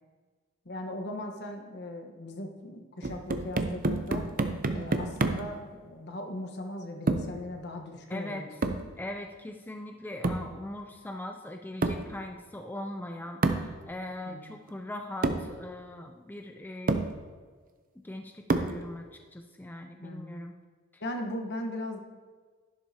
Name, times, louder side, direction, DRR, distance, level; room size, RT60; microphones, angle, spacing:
voice 1, 0.6-4.2 4.7-8.5 14.3-14.6 20.0-20.2 21.0-22.0, left 1 dB, 55° left, 4 dB, 1.2 m, -38 dB
sound 1, 3.0-5.6 7.1-7.4 8.6-8.9 10.2-10.5 11.8-12.1 13.4-13.7 14.7-14.8 15.2-15.5 16.4-16.5 16.9-17.1 18.5-18.8, right 2 dB, 45° right, 0.6 m, -28 dB
voice 2, 8.1-8.6 9.0-17.1 18.0-19.1 19.3-20.5 20.9-21.0, left 1 dB, 10° left, 4 dB, 0.4 m, -40 dB
11.0 x 10.5 x 2.8 m, 1.5 s
head